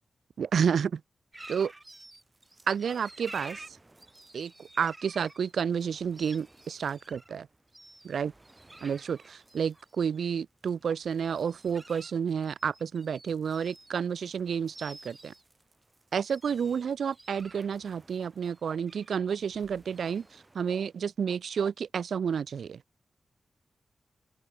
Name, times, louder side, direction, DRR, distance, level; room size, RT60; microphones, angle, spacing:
voice 1, 0.4-1.0 1.5-1.7 2.7-3.6 4.3-7.5 8.0-8.3 8.8-15.3 16.1-22.8, right 7 dB, 85° right, 0.6 m, -30 dB
sound 1, 1.3-21.0, right 2 dB, 20° right, 5.0 m, -52 dB
open air
wide cardioid pair, 125°, 0 cm